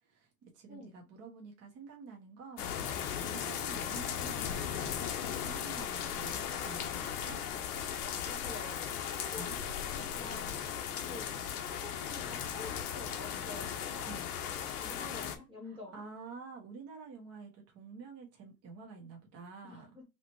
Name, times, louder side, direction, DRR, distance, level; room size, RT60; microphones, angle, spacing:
voice 1, 0.0-7.4 9.3-9.6 14.1-14.3 15.6-19.9, right 5 dB, 30° right, 1.3 m, -49 dB
sound 1, 2.6-15.4, left 9 dB, 65° left, 0.9 m, -37 dB
voice 2, 8.0-10.6 11.0-14.3 14.8-16.0 19.6-20.0, left 2 dB, 10° right, 1.0 m, -49 dB
4.0 x 3.0 x 3.0 m
hypercardioid pair, 115°, 50 cm